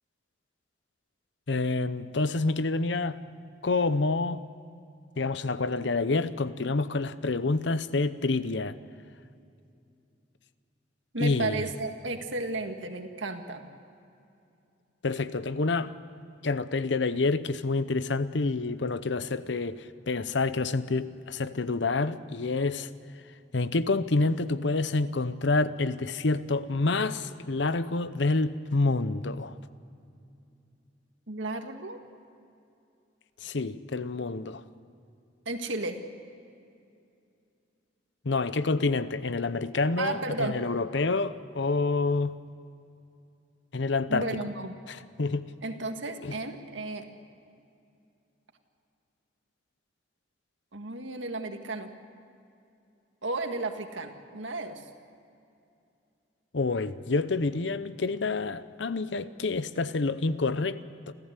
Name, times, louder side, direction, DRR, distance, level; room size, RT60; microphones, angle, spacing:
voice 1, 1.5-3.2 3.6-4.4 5.2-8.7 11.2-11.6 15.0-15.9 16.4-22.9 23.5-29.5 33.4-34.6 38.2-42.4 43.7-44.3 44.9-45.5 46.2-46.3 56.5-61.1, left 3 dB, 70° left, 14 dB, 0.8 m, -28 dB
voice 2, 11.1-13.6 31.3-32.0 35.5-36.0 40.0-40.6 44.1-44.8 45.6-47.1 50.7-51.9 53.2-54.8, right 2 dB, 85° right, 5 dB, 1.9 m, -33 dB
27.5 x 14.5 x 8.3 m, 2.6 s
head